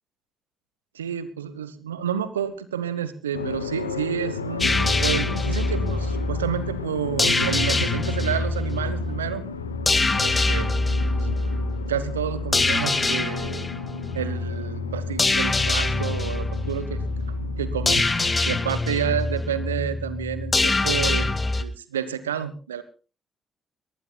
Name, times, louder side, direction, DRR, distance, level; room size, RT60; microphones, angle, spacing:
voice 1, 0.9-9.4 10.2-10.7 11.0-11.6 11.9-13.7 14.1-17.0 17.4-18.0 18.4-21.3 21.6-22.8, right 9 dB, 85° right, 14 dB, 1.1 m, -30 dB
sound 1, 3.3-18.7, left 5 dB, 90° left, 0.9 m, -35 dB
sound 2, 4.6-21.6, left 2 dB, 30° left, 2.0 m, -25 dB
22.0 x 19.5 x 2.3 m, 0.35 s
figure-of-eight pair, 40°, 0 cm